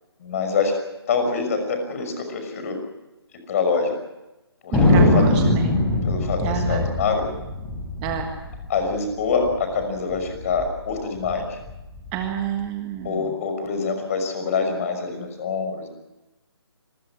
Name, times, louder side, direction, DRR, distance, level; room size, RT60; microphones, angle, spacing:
voice 1, 0.2-0.8 1.1-2.8 3.5-3.9 4.6-5.2 6.0-7.3 8.7-11.6 13.0-15.9, left 5 dB, 35° left, 6 dB, 5.9 m, -25 dB
Thunder, 4.7-9.6 9.8-9.9 10.1-10.7 11.2-12.3, left 1 dB, 10° left, 5.5 m, -21 dB
voice 2, 4.7-5.8 6.4-6.9 8.0-8.3 12.1-13.4, right 7 dB, 15° right, 5 dB, 1.5 m, -29 dB
26.5 x 22.0 x 6.1 m, 1.0 s
figure-of-eight pair, 155°, 14 cm